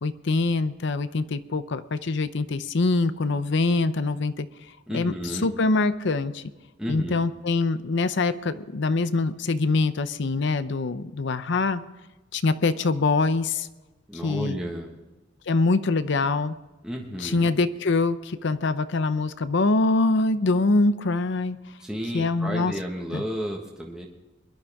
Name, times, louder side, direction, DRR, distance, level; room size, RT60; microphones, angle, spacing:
voice 1, 0.0-4.5 4.9-6.4 6.9-11.8 12.3-13.7 14.1-14.6 15.5-16.5 17.2-21.6 22.1-22.7 23.1-23.2, left 3 dB, 65° left, 12 dB, 0.7 m, -24 dB
voice 2, 4.9-5.5 6.8-7.2 14.1-14.9 16.8-17.5 21.8-24.1, equal, 5° right, -1 dB, 1.5 m, -32 dB
22.5 x 11.5 x 3.6 m, 1.1 s
head